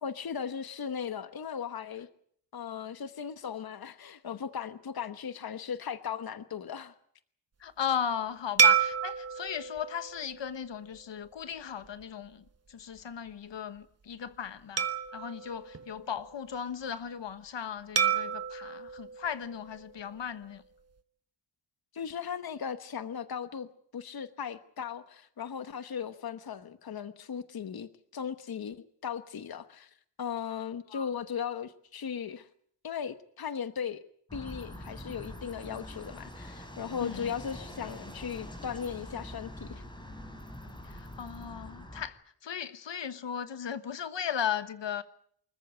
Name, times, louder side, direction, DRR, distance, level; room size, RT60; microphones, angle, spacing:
voice 1, 0.0-2.1 2.5-6.9 21.9-23.7 23.9-32.5 32.8-34.0 34.3-39.8, left 7 dB, 55° left, 1.1 m, -37 dB
voice 2, 7.6-20.6 30.9-31.1 37.0-37.3 40.8-45.0, left 8 dB, 80° left, 1.3 m, -37 dB
sound 1, 8.6-11.3 11.8-12.0 14.8-16.6 18.0-20.2, right 7 dB, 35° right, 1.1 m, -30 dB
sound 2, 34.3-42.1, left 1 dB, 10° left, 3.6 m, -44 dB
25.5 x 14.5 x 9.3 m
wide cardioid pair, 170°, 43 cm